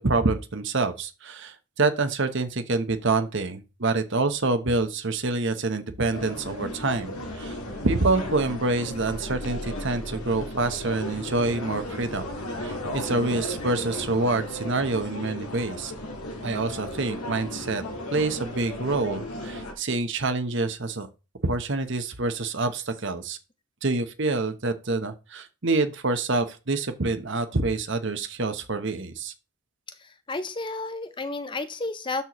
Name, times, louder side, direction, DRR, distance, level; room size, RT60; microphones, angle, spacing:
voice 1, 0.0-7.6 7.8-12.3 12.6-15.9 16.4-17.8 18.1-21.1 21.4-23.4 23.8-29.3, right 3 dB, 55° right, 1.0 m, -27 dB
sound 1, 6.1-19.7, left 1 dB, 85° left, 1.7 m, -35 dB
voice 2, 29.9-32.2, left 2 dB, 20° left, 0.5 m, -32 dB
12.5 x 4.4 x 3.1 m
head